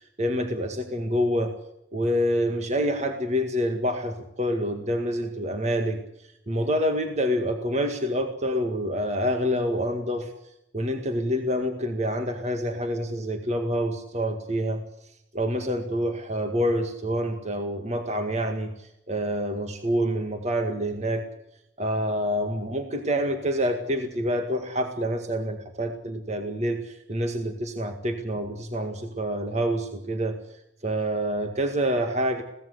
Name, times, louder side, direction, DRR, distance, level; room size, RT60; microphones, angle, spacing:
voice 1, 0.2-1.5 1.9-6.0 6.5-10.3 10.7-14.8 15.3-18.7 19.1-21.2 21.8-30.4 30.8-32.4, equal, 40° right, 5 dB, 2.0 m, -27 dB
22.5 x 17.0 x 8.3 m, 0.80 s
head